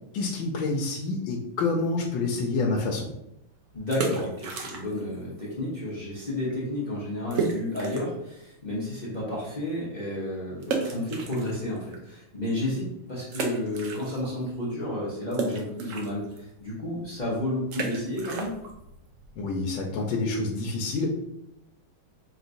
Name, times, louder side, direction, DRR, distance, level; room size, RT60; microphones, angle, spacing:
voice 1, 0.1-3.1 19.4-21.1, left 3 dB, 80° left, -1 dB, 1.4 m, -27 dB
voice 2, 3.7-18.5, left 1 dB, 35° left, -7 dB, 0.7 m, -31 dB
sound 1, 3.8-5.2 5.4-5.5 6.1-6.2 6.5-6.6 7.3-8.2 8.7-8.8 10.6-12.0 12.5-12.6 13.3-14.5 14.7-20.2, right 4 dB, 70° right, 0.7 m, -34 dB
5.5 x 2.9 x 2.6 m, 0.82 s
omnidirectional pair, 2.1 m